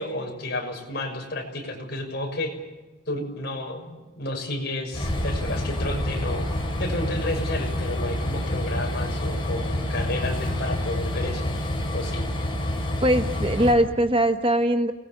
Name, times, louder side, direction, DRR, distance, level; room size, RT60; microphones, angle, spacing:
voice 1, 0.0-2.5 3.1-6.5 6.8-11.4 11.9-12.2, left 1 dB, 50° left, 2 dB, 6.3 m, -31 dB
Train, 4.9-13.7, left 1 dB, 25° left, 4.9 m, -28 dB
voice 2, 13.0-14.9, right 1 dB, 25° right, 8 dB, 1.1 m, -21 dB
29.0 x 20.5 x 7.2 m, 1.1 s
head